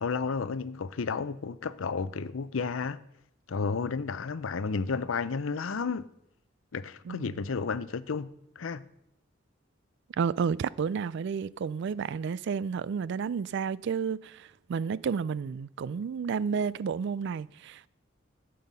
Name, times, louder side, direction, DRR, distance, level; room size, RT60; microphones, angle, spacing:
voice 1, 0.0-3.0 3.5-6.1 6.7-8.3 8.6-8.8, left 5 dB, 90° left, 0.6 m, -32 dB
voice 2, 7.1-7.4 10.2-17.9, right 6 dB, 60° right, 0.3 m, -31 dB
13.0 x 7.7 x 5.5 m
head